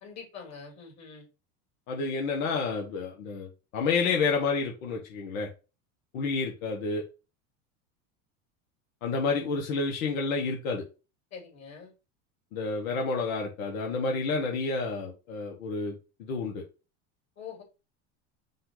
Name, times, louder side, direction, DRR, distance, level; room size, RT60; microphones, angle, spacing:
voice 1, 0.0-1.3 11.3-11.9 17.4-17.6, left 6 dB, 40° left, -1 dB, 2.8 m, -44 dB
voice 2, 1.9-5.5 6.1-7.0 9.0-10.8 12.5-16.6, left 4 dB, 80° left, 0 dB, 1.2 m, -30 dB
5.5 x 2.6 x 3.8 m, 0.30 s
hypercardioid pair, 100°, 41 cm